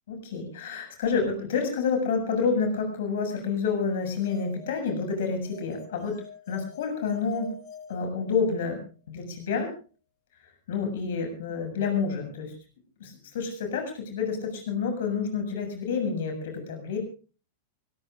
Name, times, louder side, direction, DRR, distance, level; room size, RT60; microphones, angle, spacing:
voice 1, 0.1-7.5 7.9-8.8 9.1-9.7 10.7-12.5 13.0-17.0, left 5 dB, 65° left, 5 dB, 7.1 m, -29 dB
sound 1, 4.0-8.8, left 5 dB, 40° left, 2.4 m, -47 dB
24.5 x 20.0 x 2.5 m, 0.37 s
figure-of-eight pair, 95°, 0 cm